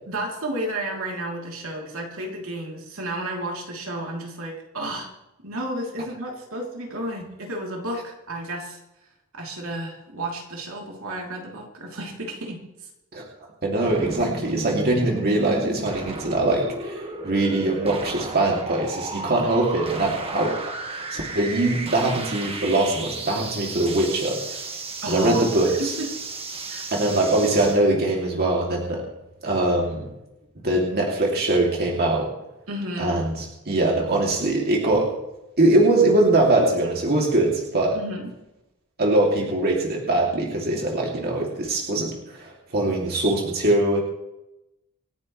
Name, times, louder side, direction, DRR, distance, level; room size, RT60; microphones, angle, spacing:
voice 1, 0.1-5.1 5.4-8.8 9.3-12.7 25.0-26.1 26.7-26.9 32.7-33.2 37.9-38.3, right 1 dB, 65° right, -1 dB, 3.2 m, -32 dB
voice 2, 13.6-20.6 20.9-24.7 25.1-25.9 26.9-29.0 29.4-30.1 30.6-32.3 33.0-35.1 35.6-38.0 39.0-44.0, right 2 dB, 45° right, -2 dB, 2.7 m, -22 dB
sound 1, 13.9-27.8, right 2 dB, 25° right, 1.6 m, -34 dB
27.5 x 9.8 x 3.2 m, 0.92 s
head